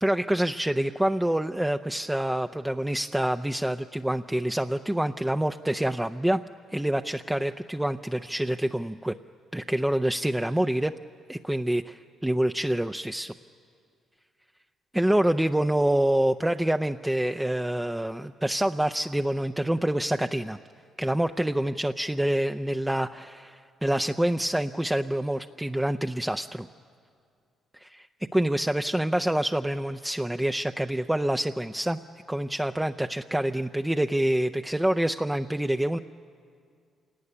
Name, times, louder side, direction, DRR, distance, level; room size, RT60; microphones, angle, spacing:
voice 1, 0.0-6.4 6.7-9.1 9.5-10.9 11.3-13.3 14.9-20.6 21.0-26.7 27.8-28.1 28.3-32.0 32.3-36.0, right 1 dB, 5° right, 6 dB, 0.5 m, -26 dB
27.0 x 18.0 x 9.8 m, 2.3 s
cardioid pair, 90°, 0 cm